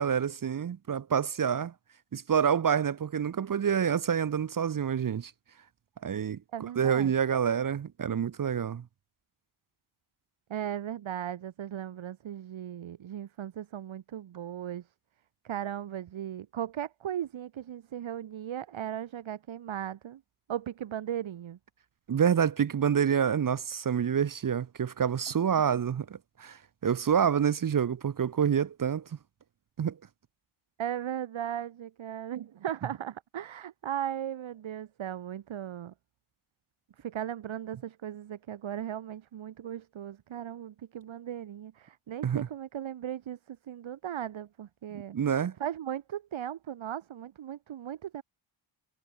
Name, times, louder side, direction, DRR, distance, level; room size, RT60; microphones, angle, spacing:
voice 1, 0.0-1.7 2.1-5.3 6.0-8.8 22.1-26.6 26.8-29.0 29.8-30.0 42.2-42.5 45.1-45.5, right 8 dB, 40° right, 1.0 m, -27 dB
voice 2, 6.5-7.1 10.5-14.9 15.4-20.2 20.5-21.6 25.7-25.8 30.8-35.9 37.0-45.2 45.6-48.2, right 10 dB, 65° right, 2.0 m, -37 dB
cardioid pair, 105°, 50 cm